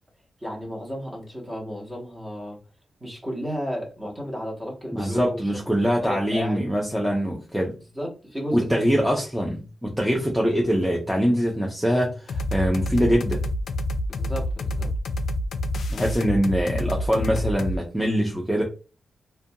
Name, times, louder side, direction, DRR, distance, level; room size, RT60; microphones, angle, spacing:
voice 1, 0.4-2.6 3.0-5.6 6.0-6.6 7.9-8.8 14.1-14.9, equal, 20° right, 0.9 m, -33 dB
voice 2, 4.9-7.8 8.5-13.4 15.9-18.6, equal, ahead, 0.5 m, -23 dB
sound 1, 12.3-17.8, left 1 dB, 80° left, 0.3 m, -27 dB
2.5 x 2.2 x 2.7 m
wide cardioid pair, 135°, 0 cm